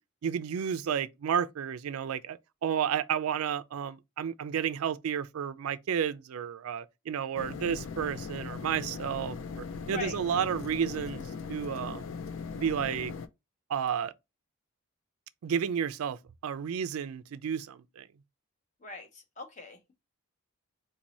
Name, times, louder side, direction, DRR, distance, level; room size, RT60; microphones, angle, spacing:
voice 1, 0.2-12.0 12.6-13.1 13.7-14.1 15.4-18.1, right 8 dB, 80° right, 0.4 m, -32 dB
sound 1, 7.3-13.3, left 5 dB, 60° left, 0.4 m, -39 dB
voice 2, 9.9-10.2 18.8-19.9, left 3 dB, 35° left, 0.8 m, -41 dB
4.0 x 2.6 x 2.9 m
head